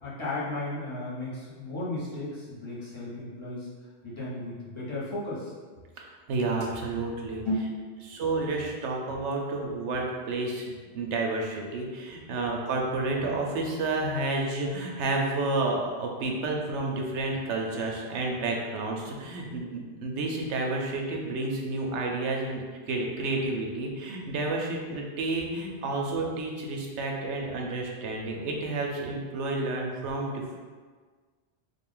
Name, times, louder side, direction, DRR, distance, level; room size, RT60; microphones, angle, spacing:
voice 1, 0.0-3.7 4.0-5.5 7.4-8.2 12.4-12.6, left 1 dB, 25° left, -9 dB, 1.0 m, -34 dB
voice 2, 6.0-7.4 8.1-30.6, right 2 dB, 85° right, 0 dB, 1.0 m, -30 dB
3.6 x 2.4 x 3.7 m, 1.5 s
omnidirectional pair, 1.2 m